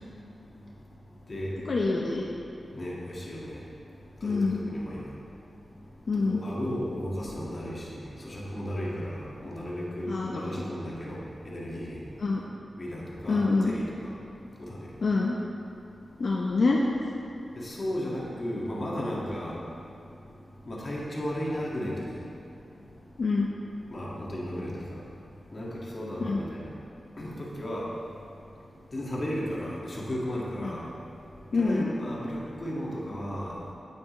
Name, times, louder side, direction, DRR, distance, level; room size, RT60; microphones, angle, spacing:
voice 1, 1.7-2.2 4.2-4.6 6.1-6.4 10.1-10.7 12.2-12.4 13.3-13.7 15.0-15.3 16.2-16.8 23.2-23.5 26.2-26.4 30.6-30.7 31.5-31.9, left 3 dB, 65° left, -2 dB, 0.7 m, -26 dB
voice 2, 2.7-3.6 4.2-5.0 6.3-11.2 11.5-12.0 12.8-13.8 14.6-14.8 17.6-19.5 20.7-22.1 23.9-24.8 25.5-26.6 27.2-27.9 28.9-30.8 31.6-33.5, equal, 40° left, -5 dB, 2.0 m, -34 dB
9.2 x 8.6 x 3.2 m, 2.6 s
cardioid pair, 70°, 0 cm